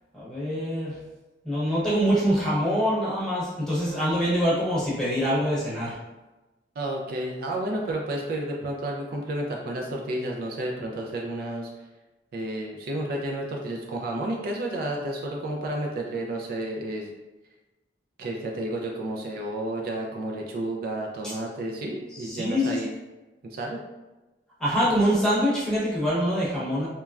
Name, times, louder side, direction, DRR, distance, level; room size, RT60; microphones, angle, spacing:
voice 1, 0.1-1.0 1.4-5.9 21.2-21.3 22.1-22.8 24.6-26.9, equal, 5° left, -9 dB, 0.8 m, -24 dB
voice 2, 6.8-11.7 12.3-17.1 18.2-22.9 23.4-23.8, right 1 dB, 55° right, 0 dB, 0.3 m, -31 dB
3.0 x 2.2 x 2.4 m, 1.1 s
head